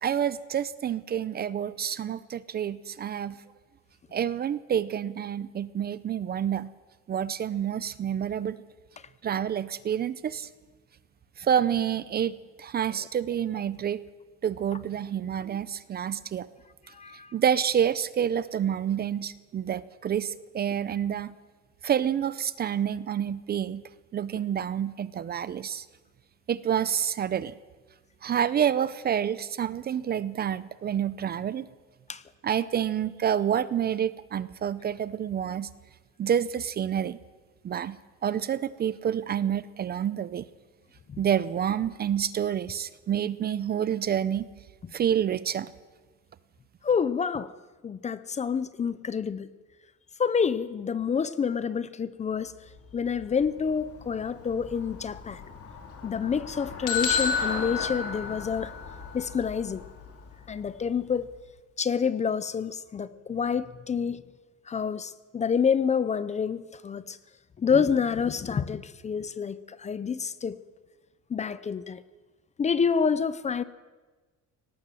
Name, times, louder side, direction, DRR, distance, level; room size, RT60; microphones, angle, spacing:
voice 1, 0.0-3.4 4.1-6.7 7.1-8.6 9.2-10.5 11.4-14.0 14.4-16.5 17.3-21.3 21.8-23.8 24.1-25.9 26.5-27.6 28.2-31.7 32.4-35.7 36.2-37.2 37.6-40.4 41.2-44.5 44.9-45.7, right 9 dB, 30° right, 0.5 m, -28 dB
voice 2, 17.0-17.3 32.1-32.2 46.8-47.5 47.8-49.5 50.2-52.5 52.9-55.4 56.0-58.7 59.1-59.8 60.5-61.3 61.8-64.2 64.7-67.2 67.6-70.6 71.3-72.0 72.6-73.6, left 6 dB, 25° left, 0.6 m, -28 dB
Traffic noise roadway noise / Bicycle, 52.3-61.5, left 5 dB, 50° left, 3.6 m, -42 dB
sound 1, 56.9-58.8, left 5 dB, 75° left, 3.8 m, -28 dB
18.5 x 18.5 x 7.6 m
cardioid pair, 160°, 31 cm